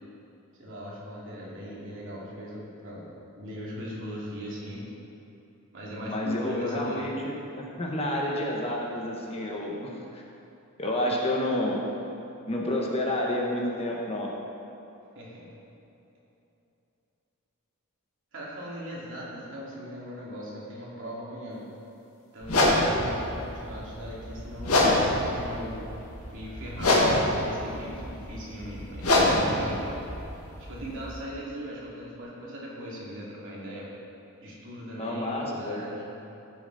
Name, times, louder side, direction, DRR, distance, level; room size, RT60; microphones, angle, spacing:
voice 1, 0.6-4.8 5.7-7.0 15.1-15.5 18.3-21.6 22.3-25.8 26.3-29.9 30.7-33.9 34.4-36.1, equal, 60° right, -6 dB, 2.8 m, -39 dB
voice 2, 6.1-10.2 10.8-11.8 12.5-14.3 35.0-35.8, left 1 dB, 25° left, -2 dB, 1.2 m, -29 dB
sound 1, 22.4-31.2, left 1 dB, 85° left, 2.0 m, -26 dB
15.5 x 7.1 x 4.1 m, 2.9 s
head